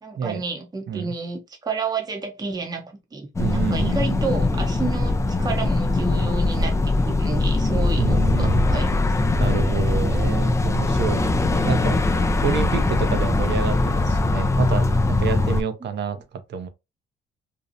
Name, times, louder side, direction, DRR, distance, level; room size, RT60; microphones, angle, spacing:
voice 1, 0.0-8.9 15.8-15.9, right 4 dB, 20° right, 0.6 m, -31 dB
sound 1, 3.4-15.6, left 2 dB, 15° left, 0.3 m, -21 dB
voice 2, 3.4-4.2 8.0-8.6 9.4-12.0 12.4-16.2 16.5-16.7, right 6 dB, 60° right, 0.6 m, -28 dB
2.6 x 2.0 x 2.6 m
cardioid pair, 90°, 20 cm